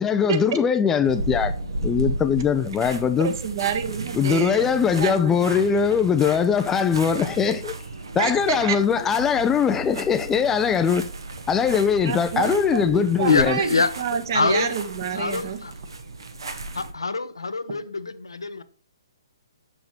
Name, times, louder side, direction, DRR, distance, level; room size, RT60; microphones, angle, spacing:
voice 1, 0.0-1.5 1.8-3.3 4.2-7.7 8.2-11.1 11.5-13.6, left 7 dB, 15° left, 0.4 m, -21 dB
sound 1, 1.0-16.9, right 2 dB, 75° right, 1.4 m, -34 dB
voice 2, 3.2-4.7 5.0-5.6 8.2-8.8 12.0-15.6, right 7 dB, 50° right, 1.4 m, -28 dB
voice 3, 12.9-13.9 14.3-14.7 15.2-15.7 16.7-18.6, left 4 dB, 85° left, 0.8 m, -25 dB
7.1 x 6.0 x 3.2 m
hypercardioid pair, 135°, 2 cm